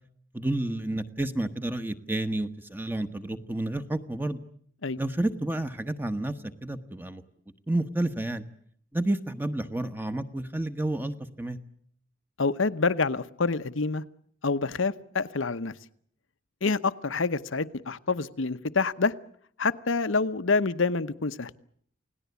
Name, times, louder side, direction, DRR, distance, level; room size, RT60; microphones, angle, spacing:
voice 1, 0.3-4.4 5.0-6.3 6.6-7.2 7.7-8.4 8.9-11.6, right 1 dB, 10° right, 9 dB, 1.2 m, -30 dB
voice 2, 12.4-14.0 14.4-15.7 16.6-19.1 19.6-21.5, left 4 dB, 80° left, 13 dB, 1.0 m, -27 dB
28.5 x 18.0 x 8.3 m, 0.65 s
head